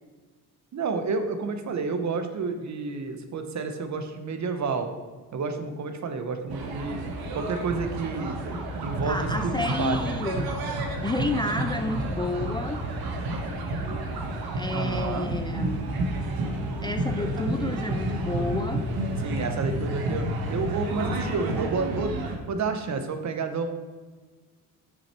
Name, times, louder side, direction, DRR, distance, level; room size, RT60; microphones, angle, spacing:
voice 1, 0.7-4.9 5.3-7.0 7.3-8.3 8.8-10.0 14.7-15.3 19.2-22.2 22.5-23.7, right 4 dB, 50° right, 7 dB, 1.0 m, -30 dB
sound 1, 6.5-22.4, right 1 dB, 75° right, 1.3 m, -30 dB
voice 2, 9.0-10.5 11.0-12.8 14.5-15.8 16.8-18.8, left 2 dB, 15° left, 6 dB, 0.3 m, -30 dB
6.9 x 5.8 x 4.4 m, 1.4 s
cardioid pair, 105°, 36 cm